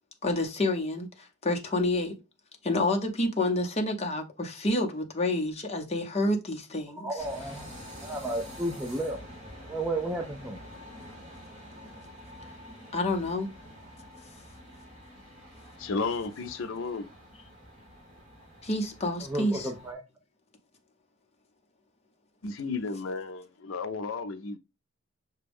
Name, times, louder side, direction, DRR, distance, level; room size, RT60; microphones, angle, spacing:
voice 1, 0.2-2.1 2.6-7.1 12.9-13.5 18.6-19.7, left 2 dB, 30° left, 0.7 m, -28 dB
voice 2, 6.9-7.7 8.0-9.2 9.7-10.6 19.2-20.0, right 1 dB, 10° right, 0.4 m, -33 dB
sound 1, 7.2-19.9, equal, 35° right, 1.6 m, -47 dB
voice 3, 15.8-17.1 22.4-24.6, left 4 dB, 70° left, 0.5 m, -33 dB
5.9 x 2.2 x 3.4 m
head